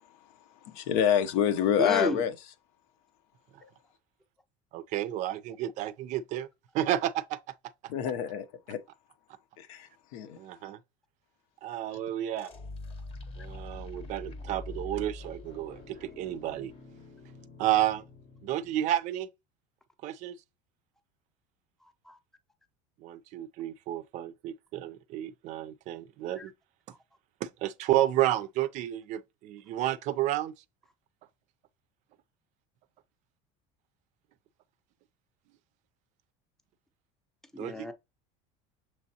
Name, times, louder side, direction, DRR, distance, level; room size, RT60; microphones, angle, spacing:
voice 1, 0.7-2.3 7.9-8.8 9.6-10.4, left 9 dB, 75° left, 0.7 m, -27 dB
voice 2, 1.8-2.2 22.1-22.2 26.4-26.5 37.5-37.9, equal, 5° left, 0.5 m, -32 dB
voice 3, 4.7-6.5 6.7-7.4 10.4-10.8 11.6-12.5 13.4-16.7 17.6-18.0 18.4-19.3 20.0-20.4 23.0-26.5 27.4-30.5 37.6-37.9, right 13 dB, 50° right, 0.4 m, -31 dB
sound 1, 12.4-19.0, left 2 dB, 35° left, 0.8 m, -44 dB
6.2 x 3.1 x 2.7 m
cardioid pair, 145°, 16 cm